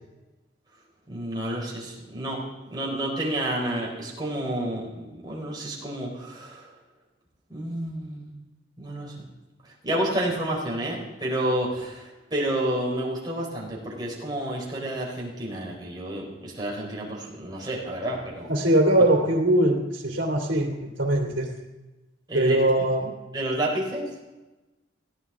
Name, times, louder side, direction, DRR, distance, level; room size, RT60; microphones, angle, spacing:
voice 1, 1.1-2.4 2.7-6.7 7.5-8.3 8.8-9.2 9.8-18.5 19.0-19.1 22.3-22.6 23.0-24.0, right 1 dB, 20° right, -3 dB, 4.1 m, -30 dB
voice 2, 18.5-21.5 22.3-23.1, right 1 dB, 80° right, -1 dB, 2.8 m, -22 dB
21.5 x 15.5 x 3.7 m, 1.1 s
head